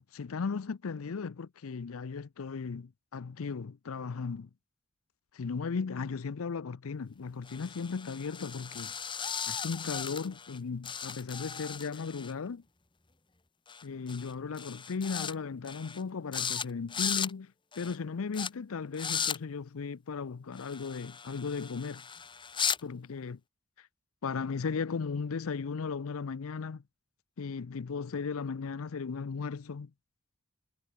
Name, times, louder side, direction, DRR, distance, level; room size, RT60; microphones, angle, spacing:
voice 1, 0.0-4.5 5.3-8.9 9.5-12.6 13.8-22.0 22.8-23.4 23.8-23.9 24.2-26.8 27.4-29.9, left 5 dB, 75° left, 0.5 m, -36 dB
sound 1, 7.5-10.6 10.8-12.3 13.7-13.8 14.1-14.3 14.6-15.3 15.6-16.0 16.3-16.6 16.9-17.3 17.7-17.9 18.3-18.5 18.9-19.4 20.6-22.8, left 7 dB, 20° left, 1.2 m, -36 dB
head